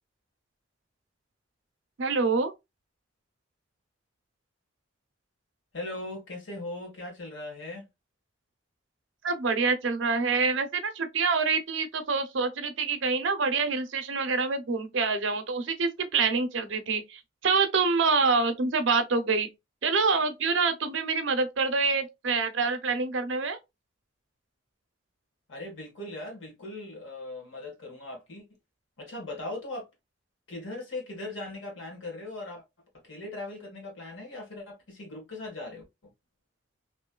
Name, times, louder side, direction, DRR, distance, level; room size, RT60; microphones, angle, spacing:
voice 1, 2.0-2.5 9.2-19.5 19.8-23.6, right 4 dB, 70° right, 0.6 m, -26 dB
voice 2, 5.7-7.9 25.5-28.4 29.0-29.9 30.5-32.6 33.0-36.1, left 2 dB, 70° left, 1.4 m, -39 dB
3.0 x 2.7 x 2.2 m
head